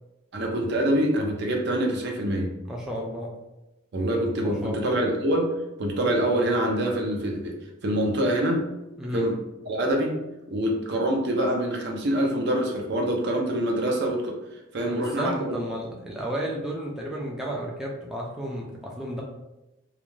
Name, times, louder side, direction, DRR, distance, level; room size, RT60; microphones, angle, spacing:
voice 1, 0.3-2.5 3.9-5.5 5.8-7.5 7.8-8.6 9.1-9.4 9.7-10.2 10.5-14.4 14.7-15.6, right 1 dB, 55° right, 1 dB, 0.5 m, -25 dB
voice 2, 2.6-3.3 4.4-5.0 9.0-9.3 14.9-19.2, equal, 5° right, -4 dB, 0.3 m, -33 dB
2.4 x 2.1 x 3.0 m, 0.95 s
head